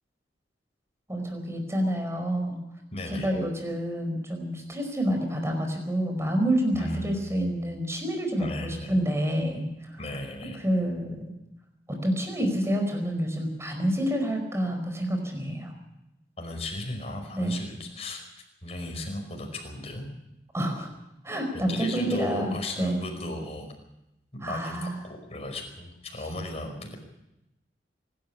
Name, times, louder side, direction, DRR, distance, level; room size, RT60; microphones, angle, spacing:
voice 1, 1.1-2.6 3.2-10.0 10.6-11.3 11.9-15.7 17.3-17.6 20.5-20.9 21.2-23.0 24.4-25.0, equal, 15° right, 3 dB, 4.9 m, -28 dB
voice 2, 2.9-3.3 6.7-7.4 8.4-8.9 10.0-10.6 16.4-18.2 18.6-20.1 21.7-23.7 24.4-27.0, left 1 dB, 35° left, 3 dB, 5.3 m, -36 dB
24.5 x 12.5 x 8.7 m, 0.89 s
head